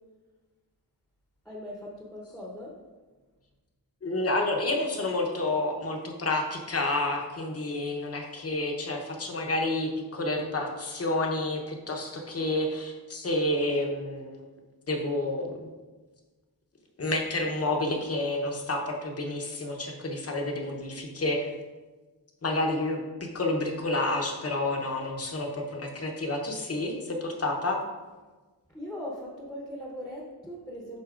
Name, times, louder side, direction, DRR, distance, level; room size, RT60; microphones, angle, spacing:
voice 1, 1.4-2.8 28.7-31.0, equal, ahead, -4 dB, 0.9 m, -39 dB
voice 2, 4.0-14.5 14.9-15.7 17.0-21.5 22.4-27.8, left 2 dB, 35° left, 2 dB, 0.8 m, -29 dB
11.5 x 4.1 x 2.4 m, 1.3 s
wide cardioid pair, 170°, 42 cm